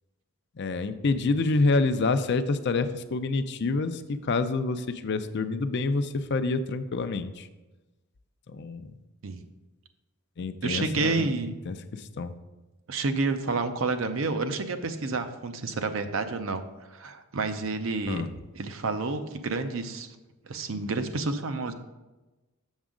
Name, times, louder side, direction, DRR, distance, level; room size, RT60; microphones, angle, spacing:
voice 1, 0.6-7.5 8.5-8.9 10.4-11.3 11.7-12.3 18.1-18.3, left 3 dB, 55° left, 10 dB, 0.5 m, -27 dB
voice 2, 10.6-11.5 12.9-16.6 16.9-18.2 18.5-20.1 20.4-21.7, right 3 dB, 70° right, 8 dB, 0.6 m, -29 dB
7.2 x 6.1 x 3.7 m, 1.1 s
head